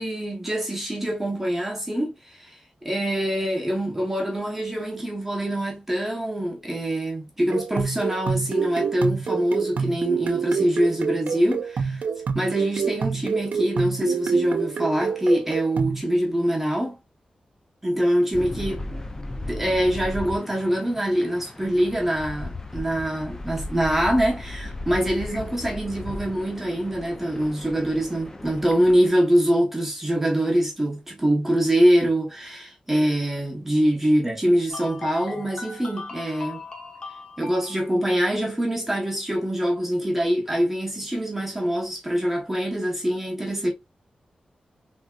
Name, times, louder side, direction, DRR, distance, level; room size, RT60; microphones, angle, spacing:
voice 1, 0.0-12.0 12.3-17.0 17.8-18.8 19.5-36.6 37.4-43.7, equal, 10° right, 0.8 m, -24 dB
sound 1, 7.5-16.0, right 6 dB, 75° right, 0.4 m, -27 dB
sound 2, 18.3-29.1, left 2 dB, 20° left, 0.4 m, -36 dB
sound 3, 34.7-37.9, left 3 dB, 40° left, 0.9 m, -38 dB
3.4 x 2.6 x 2.2 m
wide cardioid pair, 135°, 3 cm